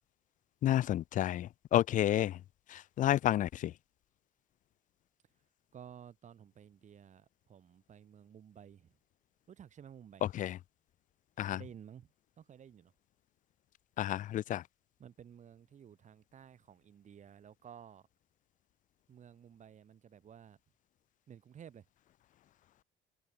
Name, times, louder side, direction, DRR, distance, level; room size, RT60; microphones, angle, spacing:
voice 1, 0.6-2.3 2.7-3.7 10.4-10.6 11.4-11.6 14.0-14.6, left 12 dB, 50° left, 0.4 m, -30 dB
voice 2, 5.7-8.9 9.5-10.3 11.4-12.1 12.4-12.9 15.0-18.1 19.1-20.6 21.3-21.9, right 8 dB, 45° right, 2.7 m, -54 dB
cardioid pair, 110°, 17 cm